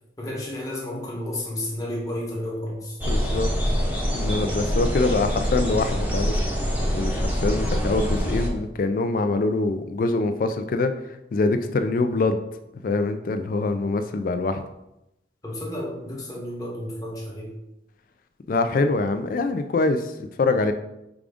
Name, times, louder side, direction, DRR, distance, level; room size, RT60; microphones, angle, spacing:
voice 1, 0.2-3.0 15.4-17.5, left 1 dB, 20° left, -3 dB, 1.0 m, -32 dB
sound 1, 3.0-8.5, equal, 10° right, 0.7 m, -25 dB
voice 2, 3.1-3.5 4.1-6.4 6.9-12.4 12.8-14.6 18.5-20.7, left 3 dB, 50° left, 9 dB, 0.3 m, -24 dB
4.8 x 2.5 x 3.5 m, 0.87 s
head